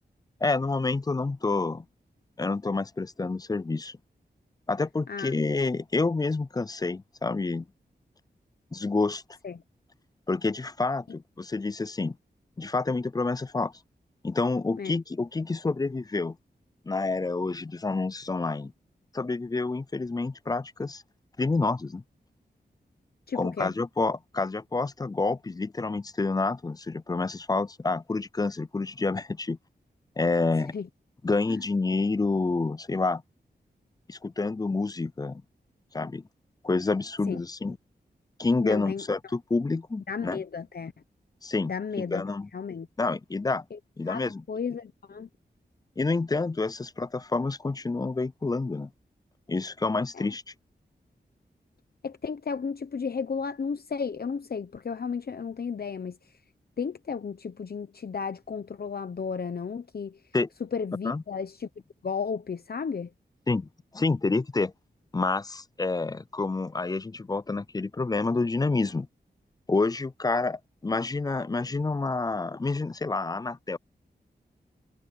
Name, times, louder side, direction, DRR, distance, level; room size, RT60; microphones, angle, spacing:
voice 1, 0.4-1.8 2.4-4.0 4.7-7.7 8.7-9.2 10.3-12.2 12.6-13.7 14.2-16.4 16.9-18.7 19.1-21.0 21.4-22.0 23.3-29.6 30.2-30.7 31.2-33.2 34.1-35.4 35.9-36.2 36.6-37.8 38.4-40.4 41.4-42.5 43.0-43.6 44.0-44.4 46.0-48.9 49.5-50.4 60.3-60.5 61.0-61.2 63.5-63.7 63.9-64.7 65.1-69.1 69.7-73.8, left 3 dB, 20° left, 0.4 m, -28 dB
voice 2, 23.3-23.7 30.7-30.9 31.5-31.6 37.3-37.4 38.6-39.0 40.1-40.9 41.7-42.2 42.5-42.9 43.7-43.8 44.1-45.3 50.1-50.3 52.0-56.2 56.8-60.2 60.7-61.7 62.0-63.1, left 6 dB, 60° left, 1.0 m, -33 dB
wide cardioid pair, 70°, 18 cm